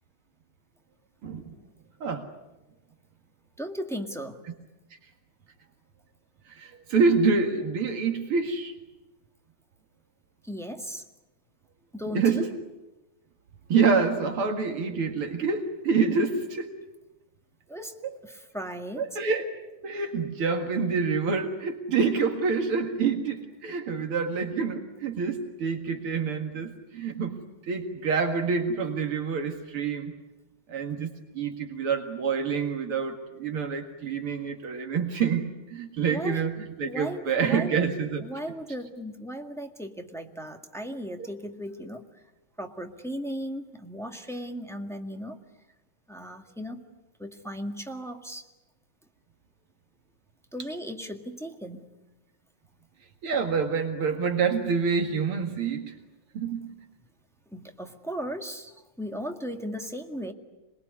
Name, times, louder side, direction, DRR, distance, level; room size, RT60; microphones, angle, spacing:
voice 1, 1.2-1.5 2.0-2.3 4.9-5.0 6.5-8.7 12.1-12.5 13.7-16.7 19.0-19.5 19.8-30.1 30.7-31.1 31.3-38.2 41.2-41.3 53.2-55.9 56.3-56.7, right 5 dB, 85° right, 4 dB, 2.8 m, -27 dB
voice 2, 3.6-4.4 10.4-11.0 11.9-12.4 17.7-17.9 18.2-19.2 36.1-36.4 36.8-37.9 38.2-42.0 42.6-45.4 46.1-46.8 47.2-48.5 50.5-51.9 57.5-60.3, equal, ahead, 4 dB, 1.7 m, -36 dB
27.0 x 21.0 x 9.6 m, 1.0 s
omnidirectional pair, 2.3 m